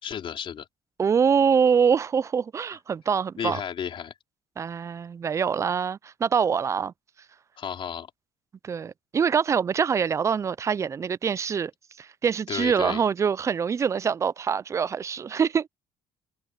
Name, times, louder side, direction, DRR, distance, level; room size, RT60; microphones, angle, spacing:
voice 1, 0.0-0.7 3.4-4.1 7.6-8.1 12.5-13.0, left 8 dB, 50° left, 4.3 m, -33 dB
voice 2, 1.0-3.6 4.6-6.9 8.6-11.7 12.0-15.7, right 6 dB, 25° right, 0.4 m, -24 dB
cardioid pair, 115°, 12 cm